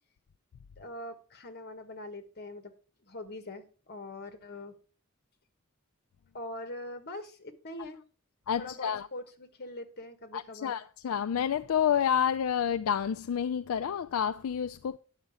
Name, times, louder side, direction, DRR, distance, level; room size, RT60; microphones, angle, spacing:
voice 1, 0.8-2.7 3.0-4.8 6.3-8.0 8.6-10.8, left 1 dB, 50° left, 1.3 m, -43 dB
voice 2, 8.5-9.1 10.3-15.0, left 8 dB, 75° left, 0.4 m, -29 dB
9.8 x 6.6 x 4.8 m
head